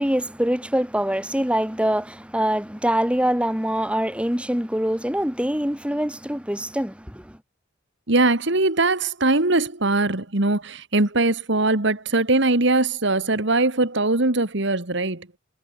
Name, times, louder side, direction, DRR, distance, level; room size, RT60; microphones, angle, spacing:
voice 1, 0.0-7.4, equal, 5° right, 3.2 m, -24 dB
voice 2, 8.1-15.3, right 2 dB, 60° right, 2.0 m, -21 dB
head